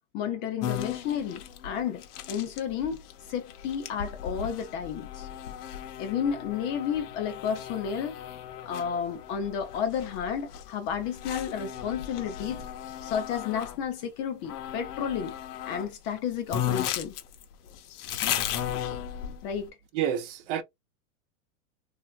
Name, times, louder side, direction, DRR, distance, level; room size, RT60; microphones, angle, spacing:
voice 1, 0.1-5.3 6.0-8.2 8.7-12.6 13.0-15.3 15.6-17.2 19.4-19.7, left 8 dB, 30° left, 0.4 m, -32 dB
sound 1, 0.6-13.8 14.4-15.9 16.2-16.3 16.5-19.6, left 10 dB, 85° left, 0.9 m, -36 dB
voice 2, 19.9-20.6, right 9 dB, 50° right, 0.6 m, -29 dB
3.3 x 2.6 x 2.3 m
supercardioid pair, 145°, 45 cm